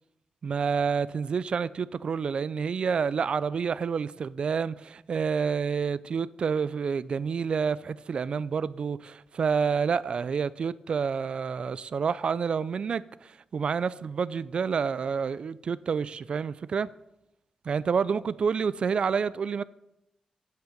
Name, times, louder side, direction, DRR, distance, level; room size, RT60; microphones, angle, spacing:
voice 1, 0.4-16.9 17.6-19.6, right 6 dB, 50° right, 0.3 m, -28 dB
9.2 x 5.8 x 6.6 m
wide cardioid pair, 130°, 2 cm